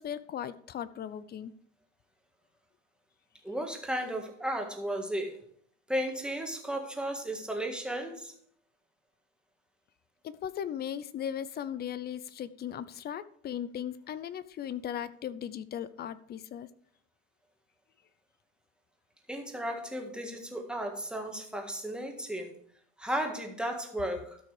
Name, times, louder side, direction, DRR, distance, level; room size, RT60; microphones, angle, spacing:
voice 1, 0.0-1.5 10.2-16.7, left 9 dB, 25° left, 16 dB, 0.5 m, -37 dB
voice 2, 3.4-5.4 5.9-8.3 19.3-22.5 23.0-24.4, right 1 dB, ahead, 3 dB, 1.7 m, -34 dB
13.0 x 5.8 x 4.9 m, 0.62 s
supercardioid pair, 135°, 37 cm